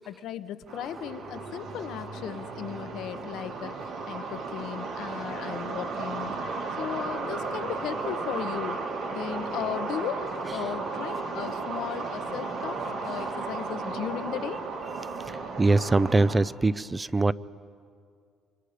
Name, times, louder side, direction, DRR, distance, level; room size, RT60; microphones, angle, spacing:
voice 1, 0.1-3.7 4.1-6.4 6.8-8.8 9.1-14.6, left 10 dB, 75° left, 11 dB, 0.9 m, -36 dB
sound 1, 0.7-16.4, right 4 dB, 75° right, 3.7 m, -34 dB
voice 2, 15.3-17.3, right 3 dB, 20° right, 18 dB, 0.5 m, -23 dB
28.5 x 25.0 x 5.1 m, 2.2 s
cardioid pair, 90°, 0 cm